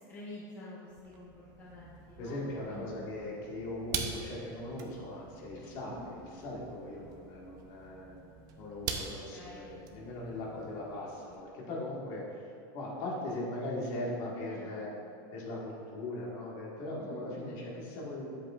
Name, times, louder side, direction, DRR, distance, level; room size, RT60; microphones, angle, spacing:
voice 1, 0.0-3.1 5.8-6.1 9.0-9.7 14.3-14.9 17.0-17.2, left 1 dB, 15° left, -7 dB, 0.9 m, -48 dB
sound 1, 0.9-11.4, right 6 dB, 35° right, 0.6 m, -44 dB
voice 2, 2.2-8.2 8.6-12.5 12.7-14.9 15.3-18.3, left 1 dB, 45° left, -4 dB, 1.7 m, -39 dB
9.5 x 8.0 x 2.5 m, 2.6 s
supercardioid pair, 170°, 11 cm